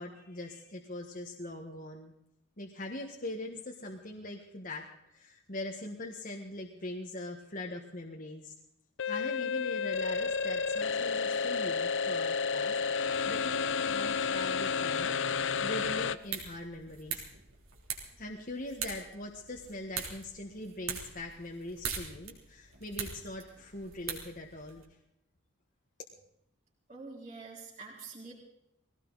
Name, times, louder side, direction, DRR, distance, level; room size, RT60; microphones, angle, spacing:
voice 1, 0.0-2.1 2.6-8.5 9.0-15.2 15.6-17.2 18.2-24.8, left 1 dB, 40° left, 1 dB, 1.6 m, -42 dB
sound 1, 9.0-16.1, left 5 dB, 60° left, 0.6 m, -31 dB
sound 2, 16.0-24.8, right 7 dB, 90° right, 3.5 m, -42 dB
voice 2, 26.9-28.3, right 4 dB, 35° right, -7 dB, 4.1 m, -46 dB
20.5 x 17.5 x 4.1 m, 0.80 s
head